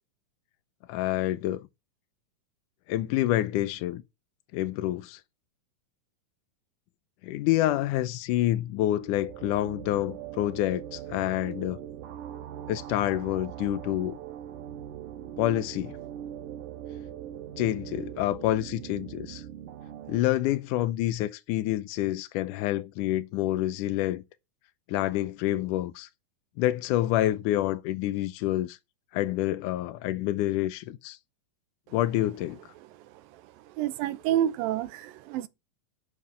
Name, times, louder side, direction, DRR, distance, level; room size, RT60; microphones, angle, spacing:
voice 1, 0.9-1.7 2.9-4.0 4.5-5.2 7.2-11.8 12.7-14.2 15.4-16.0 17.6-19.4 20.1-24.2 24.9-26.1 26.6-28.8 29.1-31.2 31.9-32.6, left 14 dB, 75° left, 2.1 m, -27 dB
sound 1, 8.6-20.2, right 10 dB, 75° right, 2.5 m, -41 dB
voice 2, 33.3-35.5, right 11 dB, 90° right, 2.6 m, -29 dB
11.0 x 7.0 x 5.6 m
omnidirectional pair, 4.0 m